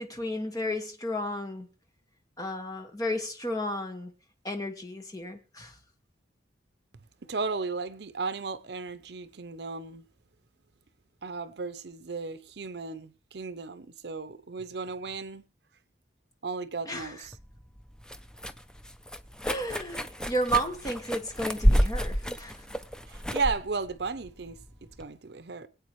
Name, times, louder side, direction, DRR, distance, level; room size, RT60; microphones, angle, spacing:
voice 1, 0.0-1.7 2.4-4.1 4.4-5.7 16.9-17.1 19.4-22.6, equal, 20° left, 1.6 m, -32 dB
voice 2, 7.3-10.0 11.2-15.4 16.4-17.3 23.0-24.6 25.0-25.7, right 4 dB, 65° right, 0.7 m, -35 dB
sound 1, 17.3-25.1, equal, 5° left, 0.5 m, -30 dB
24.0 x 8.5 x 3.1 m
head